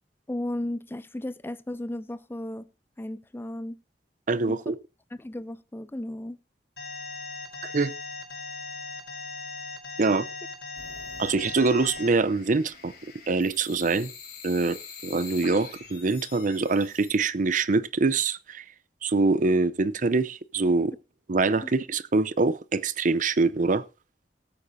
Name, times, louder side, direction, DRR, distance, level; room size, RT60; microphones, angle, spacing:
voice 1, 0.3-2.7 3.0-3.8 4.5-4.8 5.1-6.4 21.6-21.7, left 1 dB, 15° left, 0.5 m, -35 dB
voice 2, 4.3-4.8 7.6-7.9 10.0-10.3 11.2-12.9 13.3-14.1 14.4-18.6 19.0-20.9 21.3-23.8, right 3 dB, 50° right, 0.6 m, -24 dB
Alarm, 6.8-12.1, left 4 dB, 80° left, 5.3 m, -38 dB
sound 1, 10.8-17.2, left 5 dB, 60° left, 4.5 m, -45 dB
19.5 x 8.6 x 2.7 m
head